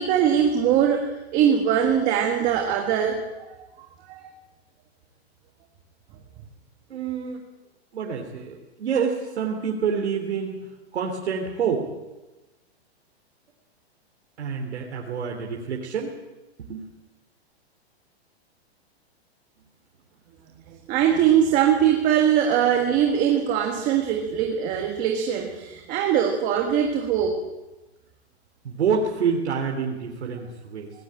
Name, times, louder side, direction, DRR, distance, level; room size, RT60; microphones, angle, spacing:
voice 1, 0.0-3.5 4.1-4.3 20.7-27.4, right 9 dB, 25° right, 3 dB, 1.6 m, -22 dB
voice 2, 6.9-7.5 7.9-11.9 14.4-16.1 16.6-16.9 28.6-30.9, right 6 dB, 85° right, 0 dB, 3.5 m, -27 dB
18.5 x 18.0 x 8.9 m, 1.1 s
hypercardioid pair, 170°, 32 cm